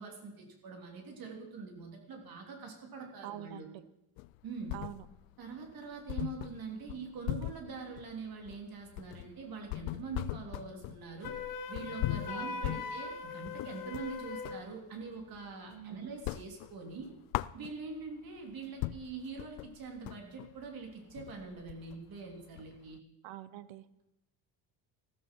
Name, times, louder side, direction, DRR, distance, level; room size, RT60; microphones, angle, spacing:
voice 1, 0.0-3.7 4.4-4.7 5.4-11.4 11.7-17.1 17.5-23.0, right 4 dB, 50° right, 2 dB, 3.3 m, -44 dB
voice 2, 3.2-3.8 4.7-5.1 12.3-12.8 15.7-16.1 23.2-23.9, right 13 dB, 75° right, 15 dB, 1.0 m, -45 dB
sound 1, 4.2-5.3 5.6-5.7 6.1-14.7 15.1-15.8 16.1-18.1 18.5-18.6 18.8-23.0, left 18 dB, 90° left, 0.5 m, -40 dB
Wind instrument woodwind instrument, 11.2-14.6, left 5 dB, 45° left, 1.3 m, -41 dB
14.5 x 13.5 x 4.6 m, 0.89 s
cardioid pair, 140°, 45 cm